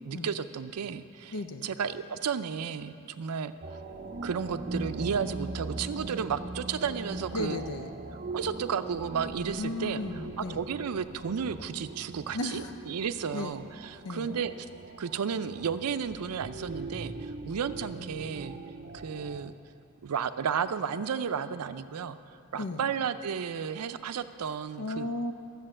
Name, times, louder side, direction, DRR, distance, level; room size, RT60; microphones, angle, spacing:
voice 1, 0.0-1.4 1.6-3.5 4.2-7.6 8.3-10.0 10.4-14.5 15.0-18.6 18.9-19.5 20.0-22.2 22.5-25.1, right 7 dB, 85° right, 12 dB, 0.5 m, -33 dB
voice 2, 1.3-1.7 7.3-7.9 9.6-10.6 12.3-12.7 13.3-13.5 14.0-14.4 22.6-22.8 24.8-25.3, left 2 dB, 75° left, 7 dB, 0.6 m, -34 dB
sound 1, 3.6-19.5, right 2 dB, 35° right, 0.5 m, -41 dB
12.0 x 7.0 x 7.6 m, 2.8 s
head